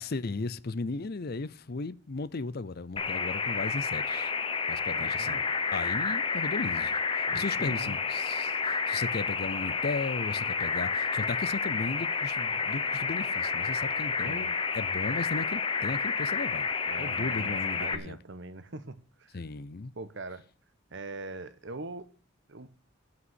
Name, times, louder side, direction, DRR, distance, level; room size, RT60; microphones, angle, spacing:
voice 1, 0.0-4.3 4.7-5.4 5.7-16.7 17.0-18.2 19.3-19.9, left 3 dB, 50° left, 0.6 m, -36 dB
sound 1, 3.0-17.9, left 5 dB, 25° left, 0.8 m, -30 dB
voice 2, 4.9-5.4 7.3-8.0 14.2-14.5 16.8-19.4 19.9-20.4 20.9-22.1 22.5-22.7, right 2 dB, 65° right, 1.1 m, -42 dB
8.2 x 7.9 x 8.2 m
head